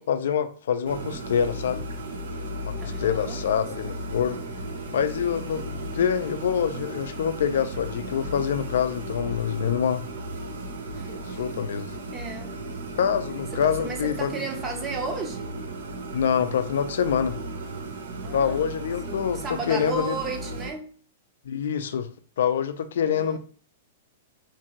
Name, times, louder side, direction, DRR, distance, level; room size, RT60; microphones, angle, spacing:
voice 1, 0.0-1.8 2.6-4.4 4.9-10.0 11.3-11.9 13.0-14.3 16.1-17.4 18.3-20.2 21.4-22.1 22.4-23.4, left 8 dB, 75° left, 0.3 m, -26 dB
sound 1, 0.8-20.7, right 1 dB, 80° right, 0.5 m, -35 dB
voice 2, 2.8-3.4 3.9-4.2 5.6-5.8 11.0-11.4 12.1-12.5 13.5-15.5 18.2-18.7 19.1-20.9 23.0-23.4, right 3 dB, 20° right, 0.6 m, -35 dB
2.6 x 2.6 x 2.9 m
hypercardioid pair, 140°, 0 cm